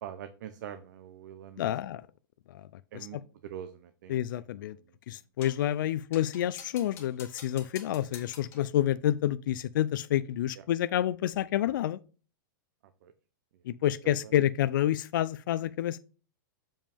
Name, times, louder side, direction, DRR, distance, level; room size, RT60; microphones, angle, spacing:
voice 1, 0.0-1.7 2.9-4.2 4.7-5.0 10.5-10.6 13.0-13.1 14.0-14.3, right 10 dB, 60° right, 0.7 m, -44 dB
voice 2, 1.6-2.0 2.5-2.6 4.1-4.8 5.1-12.0 13.7-16.0, left 12 dB, 70° left, 0.4 m, -28 dB
sound 1, 5.4-5.7 6.1-8.7, left 7 dB, 20° left, 1.5 m, -49 dB
7.2 x 5.2 x 3.4 m
supercardioid pair, 160°, 11 cm